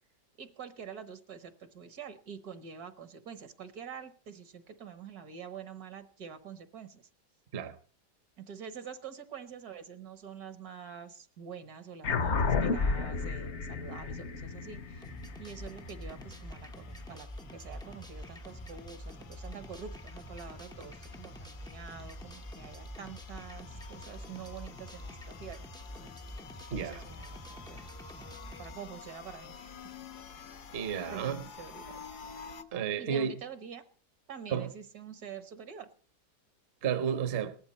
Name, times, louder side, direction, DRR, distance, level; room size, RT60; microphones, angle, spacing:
voice 1, 0.4-7.1 8.4-15.1 15.4-25.7 26.8-27.9 28.2-29.8 30.2-30.4 31.1-32.0 33.0-33.8 34.3-35.9, right 7 dB, 65° right, 1.6 m, -46 dB
sound 1, 12.0-16.8, left 4 dB, 50° left, 1.0 m, -32 dB
sound 2, 13.9-32.6, left 6 dB, 70° left, 1.6 m, -50 dB
sound 3, 15.0-28.7, equal, 5° left, 0.4 m, -46 dB
voice 2, 26.7-27.0 30.7-31.4 32.7-33.3 34.5-34.7 36.8-37.6, right 8 dB, 45° right, 1.0 m, -32 dB
18.0 x 13.0 x 4.3 m
omnidirectional pair, 1.8 m